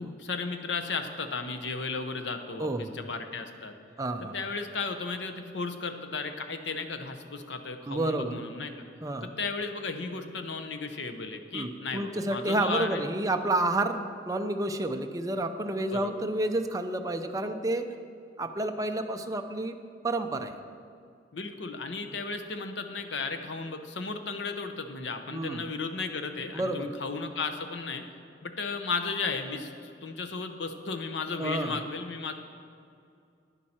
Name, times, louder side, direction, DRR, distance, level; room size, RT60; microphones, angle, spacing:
voice 1, 0.0-3.8 4.2-8.7 9.2-13.0 15.9-16.2 21.3-28.0 28.4-32.3, left 4 dB, 70° left, 7 dB, 0.8 m, -35 dB
voice 2, 2.6-3.0 4.0-4.3 7.9-8.4 9.0-9.3 11.5-14.0 14.3-17.8 18.4-19.8 20.0-20.5 25.3-25.7 26.5-26.9 31.4-31.7, right 2 dB, 20° right, 6 dB, 0.5 m, -30 dB
11.0 x 10.0 x 4.3 m, 2.4 s
head